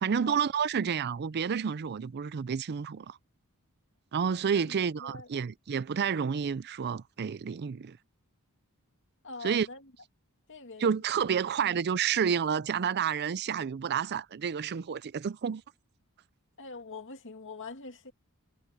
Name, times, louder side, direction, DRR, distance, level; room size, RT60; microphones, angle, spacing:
voice 1, 0.0-3.2 4.1-8.0 9.4-9.7 10.8-15.6, right 7 dB, 50° right, 0.4 m, -30 dB
voice 2, 4.5-5.4 9.2-9.9 10.5-10.9 11.7-11.8 16.6-18.1, left 4 dB, 60° left, 2.4 m, -44 dB
head